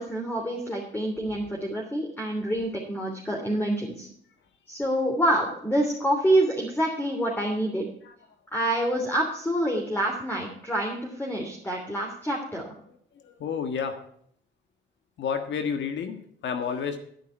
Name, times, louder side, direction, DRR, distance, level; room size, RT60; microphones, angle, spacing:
voice 1, 0.0-4.1 4.7-7.9 8.5-12.6, right 1 dB, 10° left, 0 dB, 3.1 m, -27 dB
voice 2, 13.2-14.1 15.2-17.0, left 6 dB, 65° left, 7 dB, 1.5 m, -30 dB
11.5 x 10.5 x 4.5 m, 0.65 s
cardioid pair, 90°, 20 cm